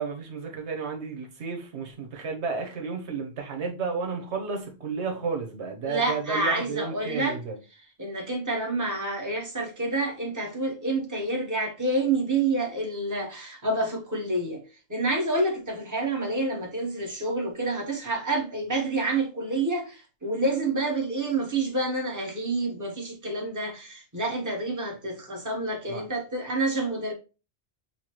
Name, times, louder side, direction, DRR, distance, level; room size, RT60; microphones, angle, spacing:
voice 1, 0.0-7.6 25.9-26.0, right 5 dB, 85° right, 1.3 m, -32 dB
voice 2, 5.9-7.4 8.0-14.6 14.9-27.1, right 2 dB, 15° right, 1.2 m, -28 dB
7.0 x 2.3 x 2.9 m
omnidirectional pair, 1.1 m